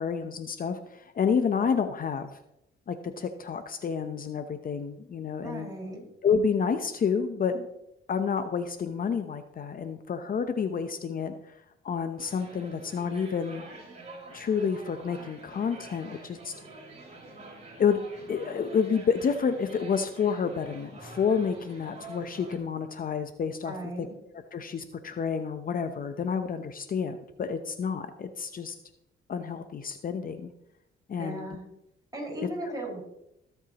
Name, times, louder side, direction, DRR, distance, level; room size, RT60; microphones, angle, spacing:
voice 1, 0.0-2.4 2.9-5.7 6.2-7.7 8.1-11.6 11.8-13.6 14.3-16.5 17.8-18.0 18.3-24.1 24.5-28.8 29.3-30.5 31.1-31.5, left 6 dB, 45° left, 9 dB, 0.8 m, -29 dB
voice 2, 5.4-6.0 23.6-24.1 31.2-31.6 32.1-33.0, right 1 dB, 20° right, -3 dB, 5.3 m, -37 dB
sound 1, 12.2-22.6, right 2 dB, 35° right, 4.4 m, -47 dB
20.0 x 8.1 x 3.0 m, 0.84 s
cardioid pair, 90°, 20 cm